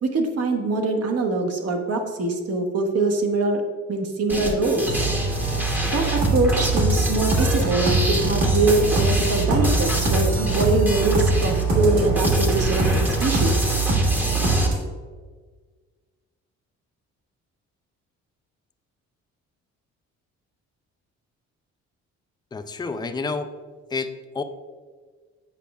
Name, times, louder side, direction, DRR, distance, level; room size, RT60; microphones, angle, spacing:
voice 1, 0.0-3.6 3.9-5.0 5.9-13.6, right 3 dB, 55° right, 4 dB, 0.9 m, -23 dB
sound 1, 4.3-14.7, equal, 5° right, 0.8 m, -28 dB
sound 2, 4.9-14.8, right 2 dB, 70° right, 1.8 m, -22 dB
voice 2, 22.5-23.5 23.9-24.4, left 4 dB, 15° left, 8 dB, 0.4 m, -29 dB
8.4 x 5.0 x 2.3 m, 1.5 s
cardioid pair, 90°, 30 cm